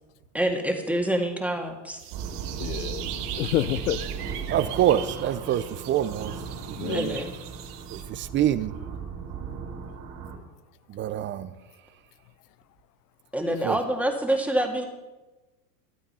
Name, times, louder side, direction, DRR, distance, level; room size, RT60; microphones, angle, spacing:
voice 1, 0.3-2.0 6.9-7.3 13.3-14.8, right 1 dB, 5° right, 1.8 m, -26 dB
sound 1, 2.0-8.0, right 11 dB, 75° right, 1.6 m, -40 dB
sound 2, 2.1-10.4, right 6 dB, 45° right, 3.5 m, -37 dB
voice 2, 2.6-4.0 6.8-7.3 13.5-13.6, left 14 dB, 75° left, 0.9 m, -29 dB
voice 3, 4.5-6.3 6.8-7.2 7.9-8.7 10.9-11.5 13.6-13.8, right 11 dB, 25° right, 0.6 m, -25 dB
13.0 x 12.5 x 5.6 m
hypercardioid pair, 115°, 47 cm